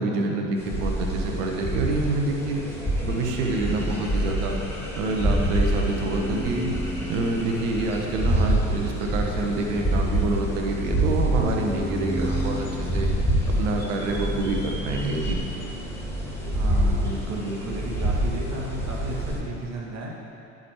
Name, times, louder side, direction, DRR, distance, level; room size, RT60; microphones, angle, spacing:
voice 1, 0.0-2.6 3.0-4.6 5.0-6.7 7.1-13.1 13.6-15.4, right 2 dB, 60° right, 2 dB, 1.3 m, -27 dB
sound 1, 0.6-19.4, right 1 dB, 5° left, 2.2 m, -27 dB
sound 2, 4.9-14.0, right 1 dB, 20° right, 0.9 m, -38 dB
voice 2, 16.5-20.1, right 2 dB, 35° right, -2 dB, 1.9 m, -33 dB
16.0 x 5.3 x 3.2 m, 2.7 s
figure-of-eight pair, 65°, 43 cm